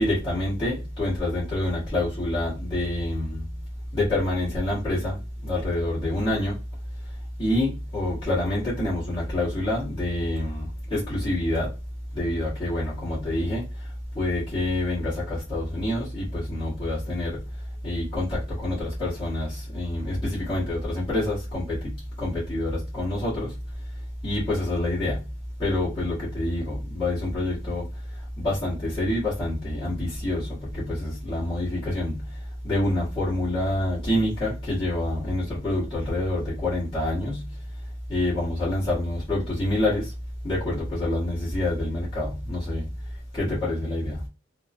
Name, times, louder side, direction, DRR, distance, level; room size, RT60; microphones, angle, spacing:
voice 1, 0.0-3.6 3.9-6.6 7.0-11.8 12.1-25.3 25.6-40.1 40.4-44.3, left 1 dB, 25° left, 1.4 m, -27 dB
3.4 x 2.1 x 2.5 m
head